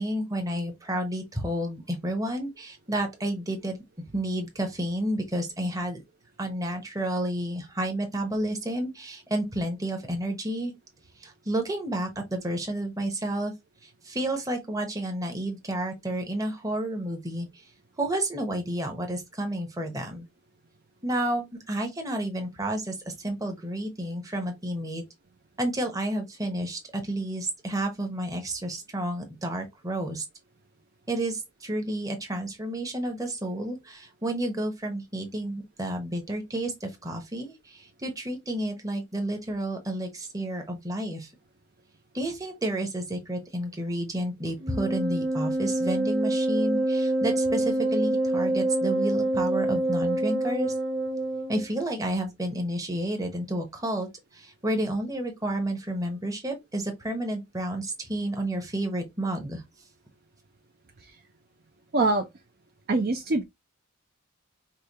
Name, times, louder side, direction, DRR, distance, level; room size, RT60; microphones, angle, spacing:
voice 1, 0.0-3.8 4.1-6.0 6.4-10.7 11.2-13.5 13.8-17.5 18.0-20.3 21.0-25.0 25.6-30.2 31.1-41.3 42.1-50.7 51.5-54.1 54.3-59.6, right 1 dB, 15° right, 0.9 m, -31 dB
Wind instrument woodwind instrument, 44.6-51.7, right 2 dB, 75° right, 1.0 m, -26 dB
voice 2, 61.9-62.3 62.9-63.4, right 2 dB, 45° right, 0.5 m, -23 dB
4.9 x 2.3 x 2.8 m
head